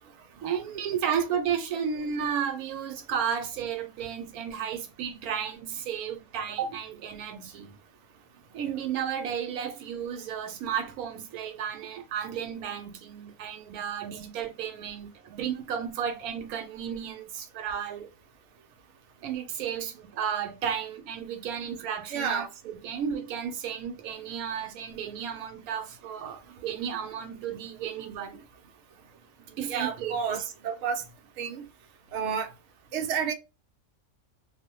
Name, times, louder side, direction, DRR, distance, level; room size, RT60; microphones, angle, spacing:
voice 1, 0.4-7.8 8.5-18.1 19.2-28.5 29.4-30.5, right 8 dB, 80° right, 1.1 m, -33 dB
voice 2, 22.1-22.5 29.7-31.0 31.4-31.6 32.1-32.5 32.9-33.3, right 7 dB, 65° right, 0.8 m, -30 dB
2.5 x 2.1 x 2.8 m
omnidirectional pair, 1.5 m